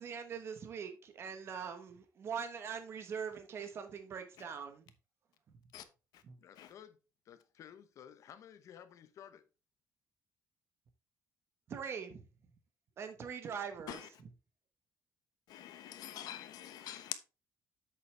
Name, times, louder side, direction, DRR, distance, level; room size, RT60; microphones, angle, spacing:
voice 1, 0.0-4.8 6.3-6.4 11.7-12.2 13.0-14.0, right 6 dB, 40° right, 1.1 m, -42 dB
voice 2, 6.4-7.0 7.2-9.4, left 9 dB, 50° left, 0.8 m, -54 dB
voice 3, 15.5-17.1, left 12 dB, 75° left, 1.1 m, -45 dB
8.1 x 6.8 x 3.3 m
cardioid pair, 180°, 7 cm